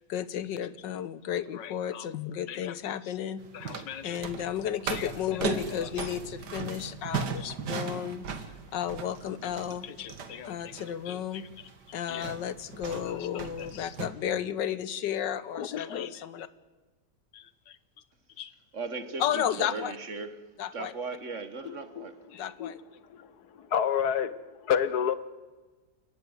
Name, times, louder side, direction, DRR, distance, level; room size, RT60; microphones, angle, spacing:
voice 1, 0.1-16.5 17.3-17.8 18.4-18.5 19.2-19.9 20.6-20.9 22.3-22.8, left 10 dB, 90° left, 1.7 m, -33 dB
sound 1, 3.4-14.1, right 5 dB, 70° right, 2.1 m, -37 dB
voice 2, 15.5-16.1 21.6-22.0 22.6-22.7 23.1-23.3 23.7-24.3 24.6-25.1, left 8 dB, 65° left, 1.5 m, -28 dB
voice 3, 18.7-20.4 20.7-22.2, right 3 dB, 45° right, 1.6 m, -37 dB
29.0 x 14.5 x 9.4 m
omnidirectional pair, 1.9 m